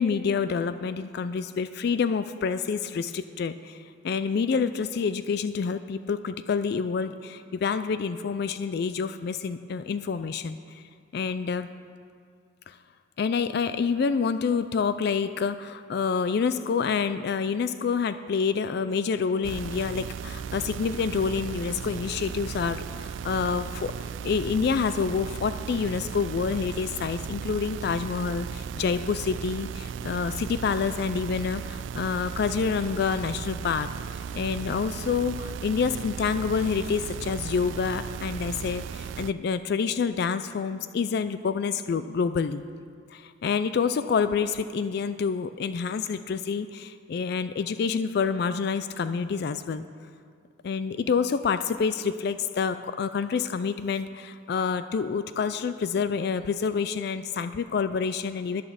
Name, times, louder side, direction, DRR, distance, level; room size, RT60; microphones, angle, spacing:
voice 1, 0.0-10.8 11.1-11.7 12.7-12.8 13.2-42.6 43.1-49.8 50.6-58.6, left 5 dB, 55° left, 12 dB, 0.3 m, -28 dB
sound 1, 19.4-39.3, right 7 dB, 65° right, 0.3 m, -36 dB
11.0 x 8.7 x 6.4 m, 2.2 s
head